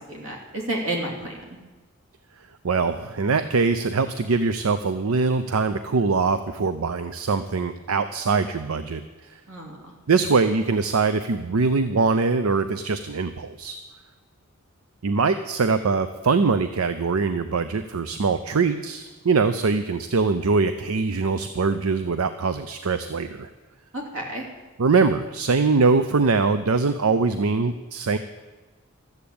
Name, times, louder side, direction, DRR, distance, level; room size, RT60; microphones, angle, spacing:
voice 1, 0.0-1.3 9.5-9.8 23.9-24.4, right 1 dB, 70° right, 0 dB, 3.2 m, -30 dB
voice 2, 2.6-9.0 10.1-13.8 15.0-23.5 24.8-28.2, right 4 dB, 90° right, 11 dB, 0.6 m, -22 dB
13.0 x 8.1 x 8.6 m, 1.2 s
head